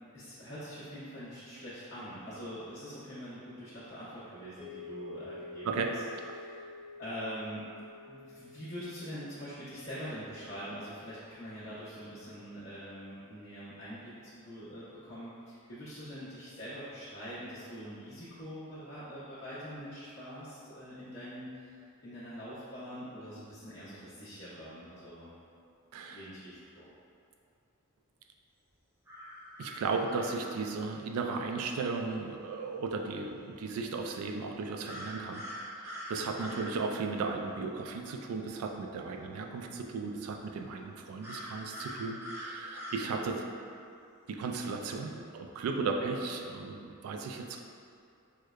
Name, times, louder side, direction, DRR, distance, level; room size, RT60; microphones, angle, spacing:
voice 1, 0.1-5.8 6.3-6.7 7.0-7.7 8.1-25.4 26.1-26.9 44.9-45.1, equal, 70° left, -14 dB, 1.0 m, -44 dB
sound 1, 4.6-12.9, left 3 dB, 65° right, 1.2 m, -50 dB
voice 2, 25.9-26.3 29.6-35.4 35.8-43.4 44.3-47.6, right 4 dB, 85° right, 3 dB, 0.3 m, -35 dB
sound 2, 29.1-30.4 34.8-36.7 41.2-43.1, equal, 10° right, 0.4 m, -43 dB
4.7 x 2.1 x 2.3 m, 2.5 s
head